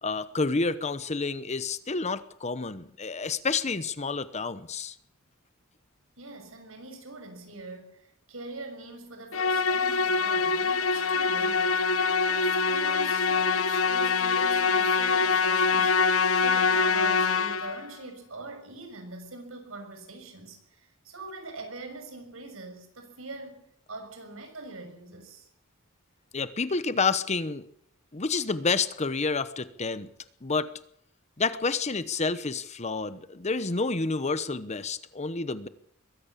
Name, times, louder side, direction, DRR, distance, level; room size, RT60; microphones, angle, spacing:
voice 1, 0.0-4.9 26.3-27.7 28.1-30.1 30.4-30.7 31.4-35.7, left 4 dB, 30° left, 14 dB, 0.9 m, -29 dB
voice 2, 6.2-15.9 16.4-25.5, right 2 dB, 75° right, 5 dB, 6.5 m, -43 dB
Musical instrument, 9.3-17.9, left 4 dB, 70° left, 1.3 m, -24 dB
22.0 x 15.0 x 8.4 m, 0.69 s
head